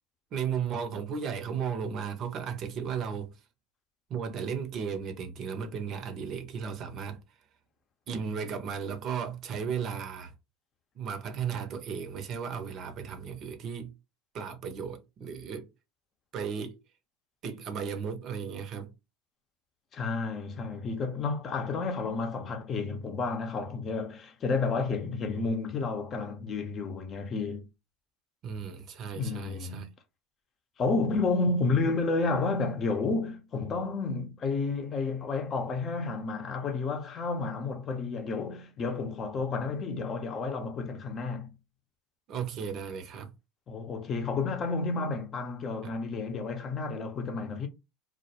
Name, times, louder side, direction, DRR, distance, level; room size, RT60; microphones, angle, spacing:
voice 1, 0.3-3.4 4.1-7.2 8.1-10.3 10.9-13.9 14.3-15.7 16.3-16.8 17.4-18.9 28.4-29.9 42.3-43.3 45.8-46.0, right 7 dB, 50° right, 0.6 m, -35 dB
voice 2, 19.9-27.7 29.2-29.9 30.8-41.5 43.7-47.7, left 3 dB, 40° left, 0.7 m, -31 dB
2.2 x 2.1 x 2.8 m
hypercardioid pair, 85°, 0 cm